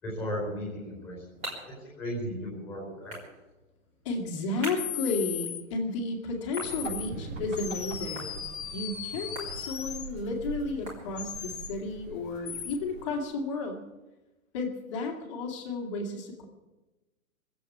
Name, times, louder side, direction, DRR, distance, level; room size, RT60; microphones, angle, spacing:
voice 1, 0.0-3.2, equal, 5° left, -3 dB, 4.4 m, -36 dB
sound 1, 0.7-11.6, equal, 15° right, 3.5 m, -47 dB
voice 2, 4.0-8.4 8.7-13.8 14.5-16.4, left 3 dB, 20° left, 1 dB, 2.1 m, -33 dB
sound 2, 4.8-5.6 6.5-7.1 7.6-10.1 11.2-11.7 12.5-12.8, left 9 dB, 35° left, 1.0 m, -37 dB
sound 3, 6.6-13.2, right 4 dB, 65° right, 5.8 m, -43 dB
21.0 x 8.0 x 8.4 m, 1.1 s
hypercardioid pair, 175°, 42 cm